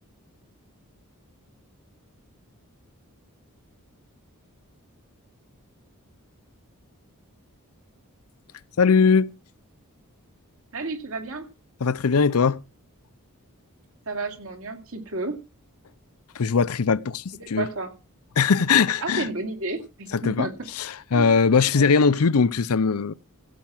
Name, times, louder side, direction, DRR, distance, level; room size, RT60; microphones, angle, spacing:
voice 1, 8.8-9.3 11.8-12.6 16.4-17.7 18.4-19.3 20.2-20.5 21.1-23.1, left 5 dB, 75° left, 0.6 m, -20 dB
voice 2, 10.7-11.5 14.1-15.4 17.4-17.9 19.0-20.7 21.1-21.3 21.7-22.0, right 3 dB, 65° right, 2.6 m, -32 dB
16.0 x 5.8 x 7.5 m
head